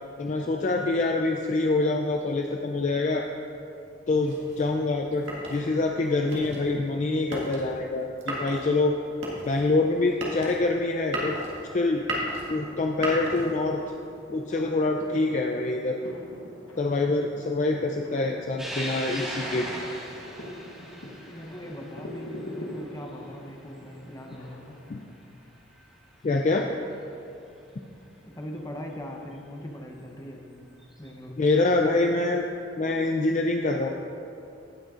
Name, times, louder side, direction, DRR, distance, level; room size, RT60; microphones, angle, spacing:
voice 1, 0.2-3.2 4.1-9.0 9.5-11.4 11.7-12.0 12.5-13.8 14.3-16.0 16.8-19.8 24.9-25.0 26.2-26.7 31.4-32.4 32.8-33.9, left 2 dB, 40° left, 2 dB, 0.4 m, -25 dB
sound 1, 4.2-13.9, right 1 dB, 75° right, 1.7 m, -36 dB
sound 2, 12.4-25.1, left 1 dB, 80° left, 1.2 m, -44 dB
sound 3, 18.6-25.3 25.7-25.8 27.0-27.1 29.3-29.4 30.8-31.1, equal, ahead, 1.7 m, -39 dB
voice 2, 21.3-24.8 28.2-30.6 31.0-31.6, left 1 dB, 15° left, 1 dB, 0.8 m, -40 dB
16.5 x 6.3 x 2.5 m, 2.7 s
head